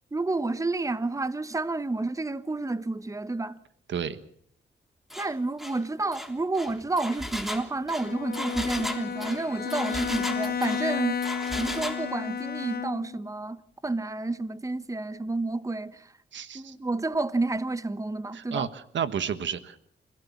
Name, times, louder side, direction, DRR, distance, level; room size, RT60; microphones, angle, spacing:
voice 1, 0.1-3.6 5.2-11.2 11.6-16.1 16.5-18.7, right 2 dB, 15° right, 1.0 m, -30 dB
Engine, 5.1-5.3 5.6-5.8 6.1-10.8 11.2-12.0, equal, ahead, 3.5 m, -36 dB
Bowed string instrument, 8.0-13.3, left 6 dB, 55° left, 0.9 m, -32 dB
voice 2, 16.3-16.7 18.3-19.8, right 7 dB, 75° right, 1.4 m, -31 dB
28.5 x 16.5 x 7.3 m
cardioid pair, 75°, 19 cm